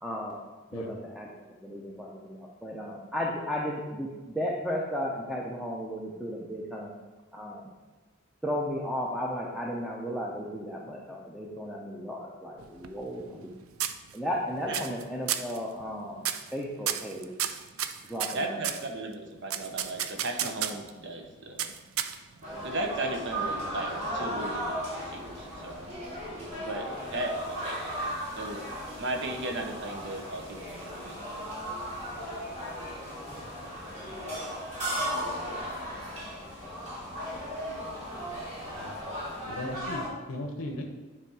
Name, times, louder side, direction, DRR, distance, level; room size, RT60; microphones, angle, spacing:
voice 1, 0.0-0.4 0.7-1.3 1.6-6.9 7.3-7.7 8.4-13.5 14.1-16.3 16.5-17.3 18.1-18.6, equal, ahead, -3 dB, 0.6 m, -34 dB
sound 1, 12.6-13.5 13.8-14.4 14.7-15.0 15.3-15.6 16.2-16.5 16.9-18.9 19.5-20.9 21.6-22.4, right 10 dB, 80° right, 0.5 m, -32 dB
voice 2, 18.3-21.7 22.6-25.9 26.6-26.8 27.1-28.1 28.4-28.6 29.0-31.2, right 2 dB, 60° right, 3 dB, 1.0 m, -36 dB
sound 2, 22.4-40.1, equal, 35° right, 2.1 m, -36 dB
voice 3, 32.9-33.3 33.9-34.3 35.0-35.1 35.5-35.9 38.7-38.9 39.5-40.8, left 1 dB, 80° left, 2 dB, 0.8 m, -39 dB
9.9 x 3.4 x 4.7 m, 1.2 s
head